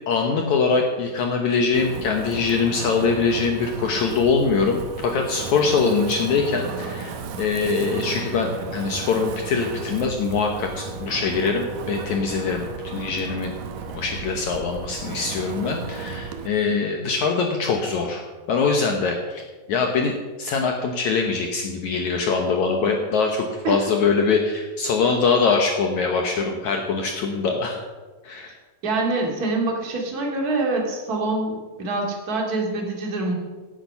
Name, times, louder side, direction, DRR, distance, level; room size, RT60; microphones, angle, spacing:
voice 1, 0.1-13.5 13.9-18.2 18.5-19.4 19.7-20.1 20.4-27.8 28.2-28.5, left 4 dB, 75° left, 3 dB, 1.7 m, -23 dB
Wind, 1.7-16.5, right 5 dB, 80° right, 1.6 m, -34 dB
voice 2, 28.8-33.3, right 2 dB, 30° right, 0 dB, 2.1 m, -25 dB
16.5 x 9.0 x 5.6 m, 1.3 s
omnidirectional pair, 4.7 m